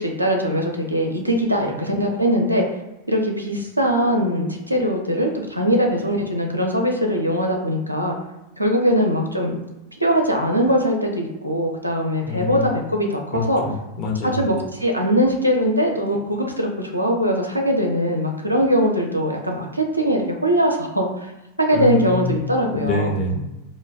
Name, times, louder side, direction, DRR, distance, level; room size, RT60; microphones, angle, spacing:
voice 1, 0.0-2.6 3.1-8.1 8.6-9.6 10.0-13.6 14.2-21.3 21.6-23.1, equal, 90° right, 1 dB, 0.4 m, -21 dB
voice 2, 12.2-12.7 13.3-14.4 21.7-22.4 22.7-23.4, left 3 dB, 35° left, 0 dB, 0.6 m, -25 dB
2.2 x 2.1 x 3.3 m, 0.99 s
figure-of-eight pair, 90°, 0 cm